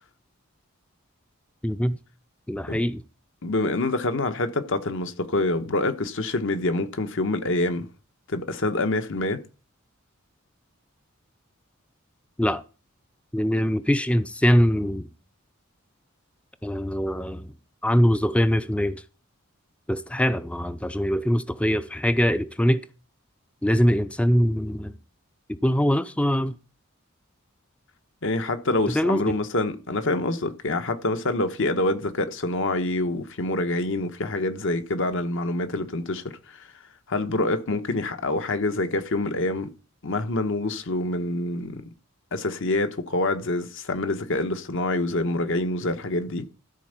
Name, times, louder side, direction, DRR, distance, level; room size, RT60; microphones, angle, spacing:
voice 1, 1.6-2.0 2.5-3.0 12.4-12.6 13.3-15.1 16.6-17.5 17.8-19.0 19.9-22.8 23.6-24.9 25.5-26.5 28.9-29.2, equal, 5° left, 0.4 m, -22 dB
voice 2, 3.4-7.9 8.3-9.4 28.2-36.2 37.1-39.7 40.0-41.9 42.3-46.4, left 2 dB, 65° left, 1.1 m, -26 dB
13.5 x 4.5 x 6.6 m
head